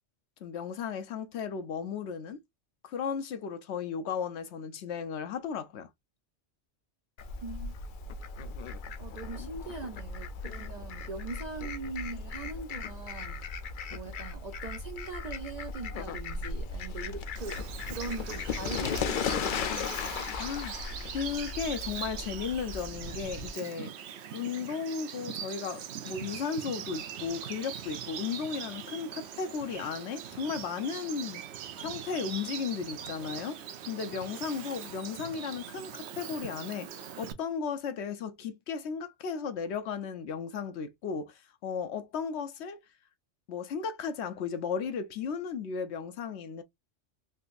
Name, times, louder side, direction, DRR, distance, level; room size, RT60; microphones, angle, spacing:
voice 1, 0.4-2.4 2.8-5.9 9.4-9.5 20.4-20.7 21.1-24.0 24.3-31.4 31.8-33.6 33.9-42.8 43.5-46.6, left 6 dB, 75° left, 0.9 m, -35 dB
Fowl, 7.2-23.5, left 5 dB, 60° left, 0.6 m, -37 dB
voice 2, 7.4-7.7 9.0-13.5 13.9-19.8, right 4 dB, 55° right, 0.4 m, -41 dB
Bird vocalization bird call bird song, 17.4-37.3, right 9 dB, 70° right, 0.8 m, -42 dB
3.8 x 2.6 x 2.4 m
omnidirectional pair, 1.2 m